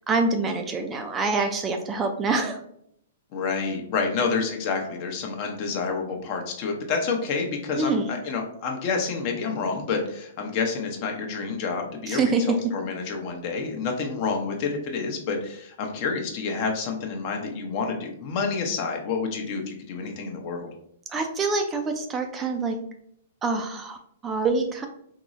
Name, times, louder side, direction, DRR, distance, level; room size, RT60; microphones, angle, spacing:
voice 1, 0.0-2.6 7.8-8.2 12.1-12.4 21.1-22.8 23.4-24.9, right 3 dB, 20° right, 5 dB, 0.3 m, -26 dB
voice 2, 3.3-20.7, left 4 dB, 45° left, 2 dB, 0.6 m, -28 dB
3.7 x 2.0 x 2.5 m, 0.70 s
hypercardioid pair, 135°, 0 cm